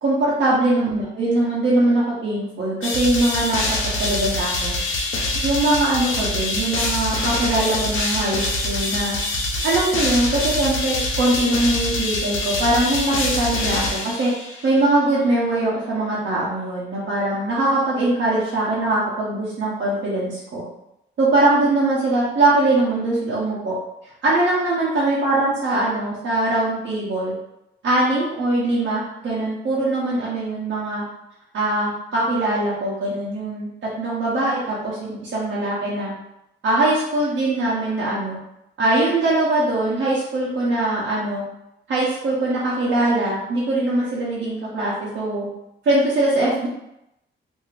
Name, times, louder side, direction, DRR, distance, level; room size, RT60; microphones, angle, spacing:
voice 1, 0.0-4.7 5.4-9.2 9.6-14.3 14.6-20.6 21.2-23.7 24.2-27.3 27.8-31.0 31.5-33.7 34.0-36.1 36.6-38.4 38.8-41.4 41.9-45.5 45.8-46.7, right 2 dB, 65° right, -7 dB, 0.8 m, -21 dB
sound 1, 2.8-14.7, left 2 dB, 90° left, 0.6 m, -25 dB
2.6 x 2.4 x 3.1 m, 0.85 s
wide cardioid pair, 160°, 20 cm